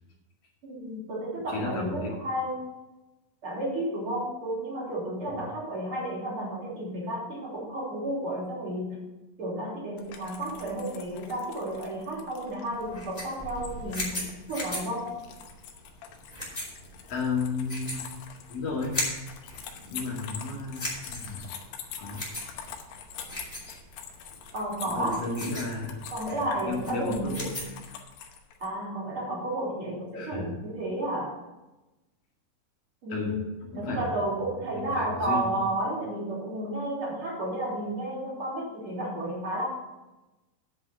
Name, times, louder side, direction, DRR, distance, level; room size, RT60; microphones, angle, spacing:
voice 1, 0.6-2.7 3.4-9.0 9.4-15.1 24.5-25.2 26.1-27.5 28.6-31.4 33.0-33.5 33.7-39.7, right 1 dB, 35° right, -5 dB, 3.8 m, -32 dB
voice 2, 1.4-2.1 5.3-5.4 16.6-16.7 17.1-18.0 18.5-18.9 19.9-20.8 21.1-21.5 22.0-22.3 23.7-23.8 24.9-26.0 26.6-27.5 30.1-30.5 33.1-33.3 33.7-34.0 34.4-34.5 34.9-35.5, left 3 dB, 45° left, -3 dB, 2.9 m, -33 dB
sound 1, 10.0-28.7, left 7 dB, 90° left, 3.1 m, -45 dB
sound 2, 12.7-27.8, left 1 dB, 15° left, 2.3 m, -39 dB
10.0 x 5.4 x 6.9 m, 1.0 s
omnidirectional pair, 4.6 m